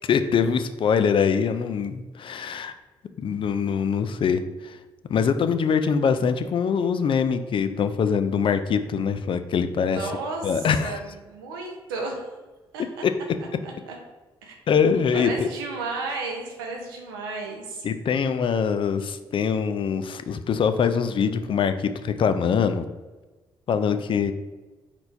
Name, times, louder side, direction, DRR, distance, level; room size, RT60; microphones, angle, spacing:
voice 1, 0.1-2.7 3.2-4.8 5.1-10.1 10.4-11.0 13.0-13.1 14.7-15.5 17.8-22.9 23.7-24.3, left 6 dB, 50° left, 10 dB, 0.4 m, -23 dB
voice 2, 9.9-12.2 12.7-12.8 13.6-14.0 14.4-14.5 15.1-17.8, right 3 dB, 90° right, 1 dB, 0.7 m, -33 dB
4.3 x 4.3 x 2.6 m, 1.2 s
hypercardioid pair, 45°, 12 cm